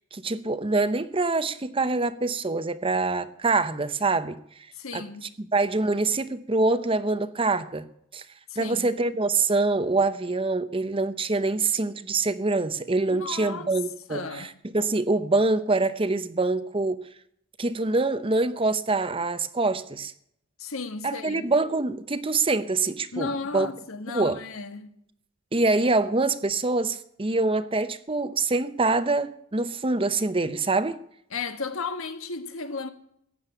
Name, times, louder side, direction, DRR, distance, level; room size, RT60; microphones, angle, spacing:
voice 1, 0.1-4.4 4.9-7.9 8.1-8.2 8.6-17.0 17.6-20.1 21.0-23.7 24.1-24.4 25.5-31.0, right 3 dB, 25° right, 0.7 m, -25 dB
voice 2, 4.8-5.3 8.5-8.9 13.1-13.7 14.1-14.5 20.6-21.4 23.1-24.9 31.3-32.9, left 4 dB, 75° left, 1.5 m, -34 dB
15.5 x 8.8 x 9.0 m
head